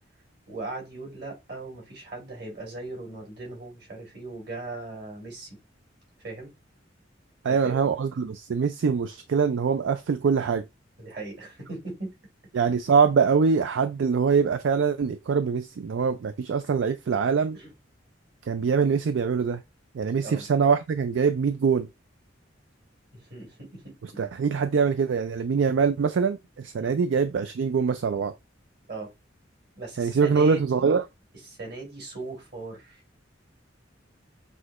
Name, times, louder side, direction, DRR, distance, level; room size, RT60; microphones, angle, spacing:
voice 1, 0.5-5.5 6.2-6.5 7.5-8.0 11.0-12.1 12.6-12.7 17.5-17.7 20.2-20.5 23.1-24.2 26.8-26.9 28.9-29.1 29.7-30.9 31.5-33.0, right 2 dB, 55° right, 2.8 m, -39 dB
voice 2, 7.4-10.6 12.5-17.6 18.5-19.6 19.9-21.9 24.0-28.3 30.0-31.0, right 5 dB, 75° right, 0.4 m, -24 dB
6.2 x 2.8 x 2.4 m
head